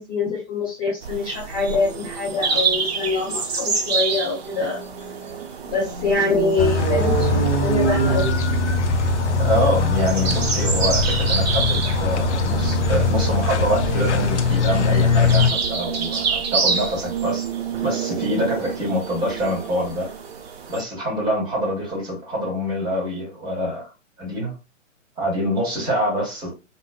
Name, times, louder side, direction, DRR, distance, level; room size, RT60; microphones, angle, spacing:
voice 1, 0.0-4.8 5.6-8.3, left 3 dB, 15° left, 0.6 m, -24 dB
sound 1, 1.0-20.8, right 6 dB, 50° right, 0.8 m, -27 dB
sound 2, 6.6-15.5, left 4 dB, 65° left, 0.5 m, -21 dB
voice 2, 9.4-17.5 17.8-20.1 20.7-23.9 24.2-24.5 25.2-26.5, equal, 10° right, 1.3 m, -25 dB
3.0 x 2.2 x 2.2 m
figure-of-eight pair, 115°, 38 cm